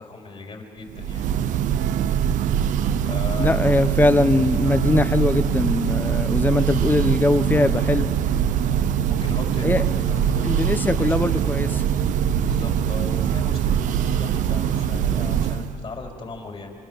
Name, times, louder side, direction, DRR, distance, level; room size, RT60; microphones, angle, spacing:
voice 1, 0.0-1.3 2.8-3.8 8.6-8.8 9.1-11.5 12.4-16.7, left 3 dB, 45° left, 1 dB, 4.7 m, -37 dB
Church bell, 0.9-15.8, right 9 dB, 80° right, 0.8 m, -23 dB
voice 2, 3.4-8.1 9.6-9.8 10.4-11.7, left 2 dB, 15° left, 12 dB, 1.0 m, -21 dB
26.5 x 24.5 x 7.3 m, 2.7 s
cardioid pair, 95°, 13 cm